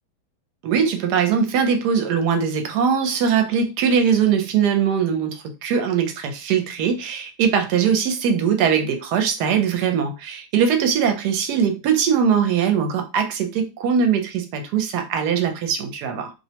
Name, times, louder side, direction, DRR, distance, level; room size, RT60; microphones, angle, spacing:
voice 1, 0.6-16.3, right 7 dB, 75° right, 6 dB, 1.2 m, -21 dB
3.0 x 2.1 x 2.8 m, 0.28 s
omnidirectional pair, 1.8 m